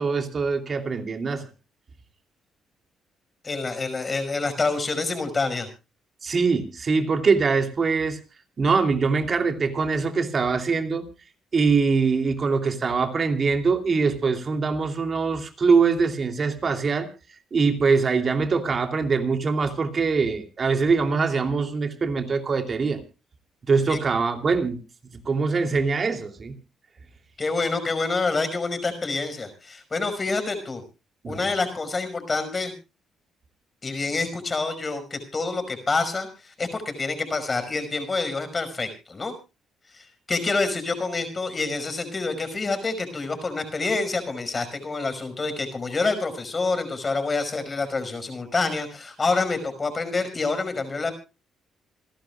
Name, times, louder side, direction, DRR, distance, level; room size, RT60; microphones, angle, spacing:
voice 1, 0.0-1.5 6.2-8.2 8.6-11.1 11.5-17.1 17.5-23.0 23.7-24.8 25.1-26.6 31.2-31.4, right 4 dB, 40° right, 6 dB, 2.9 m, -23 dB
voice 2, 3.4-5.7 23.9-24.0 27.4-30.8 31.3-32.7 33.8-39.3 39.9-51.1, left 3 dB, 30° left, 8 dB, 5.4 m, -27 dB
28.5 x 11.5 x 2.4 m, 0.31 s
cardioid pair, 90°, 0 cm